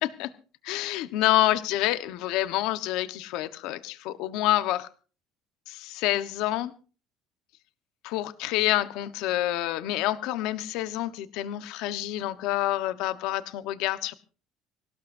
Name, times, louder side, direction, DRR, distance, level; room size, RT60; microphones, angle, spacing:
voice 1, 0.6-4.9 5.7-6.7 8.0-14.2, left 15 dB, 65° left, 12 dB, 1.2 m, -27 dB
23.5 x 18.5 x 2.7 m, 0.37 s
cardioid pair, 175°, 0 cm